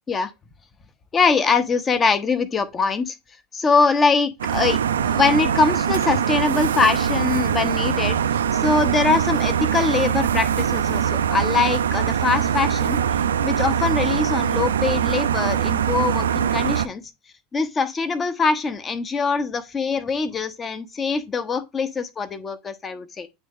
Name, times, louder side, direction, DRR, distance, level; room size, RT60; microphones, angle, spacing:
voice 1, 1.1-3.2 3.5-8.2 8.5-13.0 13.4-17.1 17.5-23.3, left 4 dB, 25° left, 0.9 m, -23 dB
sound 1, 4.4-16.9, right 8 dB, 70° right, 0.3 m, -22 dB
9.2 x 3.1 x 3.6 m
figure-of-eight pair, 75°, 0 cm